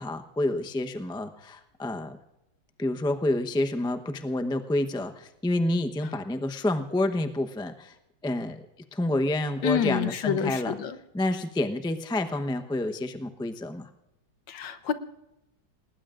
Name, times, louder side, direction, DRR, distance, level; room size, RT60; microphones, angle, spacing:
voice 1, 0.0-2.2 2.8-7.9 8.2-8.6 8.9-10.7 11.1-13.9, left 1 dB, 5° left, 6 dB, 0.3 m, -28 dB
voice 2, 9.6-11.0 14.5-14.9, left 8 dB, 80° left, 11 dB, 1.7 m, -27 dB
29.0 x 19.5 x 2.5 m, 0.92 s
omnidirectional pair, 2.0 m